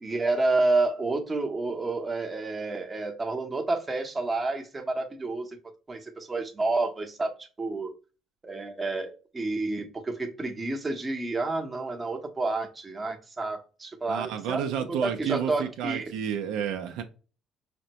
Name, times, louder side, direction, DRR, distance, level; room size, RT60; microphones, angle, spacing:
voice 1, 0.0-5.6 5.9-7.9 8.4-16.0, right 3 dB, 20° right, 0.8 m, -29 dB
voice 2, 14.1-17.0, right 8 dB, 80° right, 0.5 m, -30 dB
5.0 x 2.1 x 2.8 m
cardioid pair, 110°, 0 cm